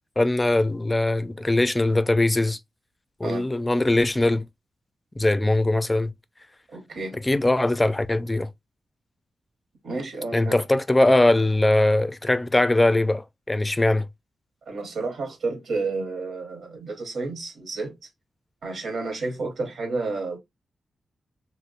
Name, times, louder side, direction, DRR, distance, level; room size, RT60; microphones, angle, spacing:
voice 1, 0.2-2.6 3.2-4.5 5.2-6.1 7.1-8.5 10.3-14.1, left 2 dB, 20° left, 0.4 m, -21 dB
voice 2, 6.7-7.2 9.8-10.6 14.7-17.9 18.6-20.4, right 3 dB, 85° right, 1.0 m, -31 dB
2.9 x 2.0 x 4.0 m
wide cardioid pair, 95°, 0 cm